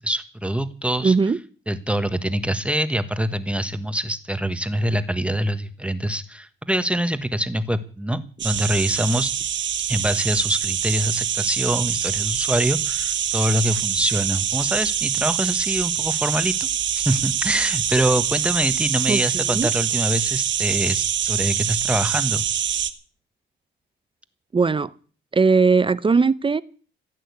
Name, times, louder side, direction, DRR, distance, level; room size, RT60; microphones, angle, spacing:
voice 1, 0.0-1.1 1.7-9.3 9.9-22.4, right 1 dB, 5° right, 11 dB, 1.3 m, -24 dB
voice 2, 1.0-1.4 19.1-19.7 24.5-24.9 25.3-26.6, right 4 dB, 25° right, 17 dB, 0.7 m, -19 dB
sound 1, 8.4-22.9, right 9 dB, 65° right, 1.6 m, -25 dB
16.0 x 9.0 x 8.3 m, 0.40 s
cardioid pair, 100°, 21 cm